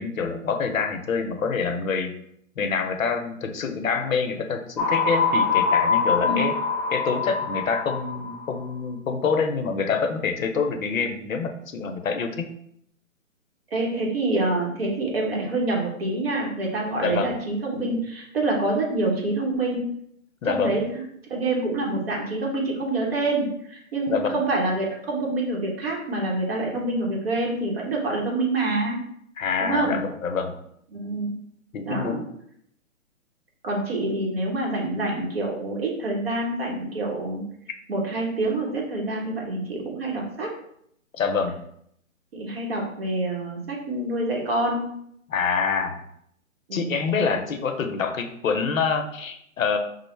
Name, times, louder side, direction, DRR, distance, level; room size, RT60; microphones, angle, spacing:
voice 1, 0.0-2.2 2.6-6.5 6.9-12.5 17.0-17.4 20.4-20.7 24.1-24.4 29.4-30.6 31.7-32.2 41.2-41.6 45.3-46.0 46.7-49.8, left 5 dB, 70° left, 6 dB, 0.6 m, -26 dB
sound 1, 4.8-8.4, left 5 dB, 15° left, 0.5 m, -24 dB
voice 2, 13.7-19.9 20.4-20.9 21.2-29.0 29.6-30.0 30.9-31.3 31.8-32.2 33.6-37.4 37.9-40.5 42.3-44.9 46.7-47.0, right 2 dB, 45° right, -1 dB, 1.0 m, -26 dB
5.1 x 2.0 x 3.2 m, 0.71 s
hypercardioid pair, 160°, 41 cm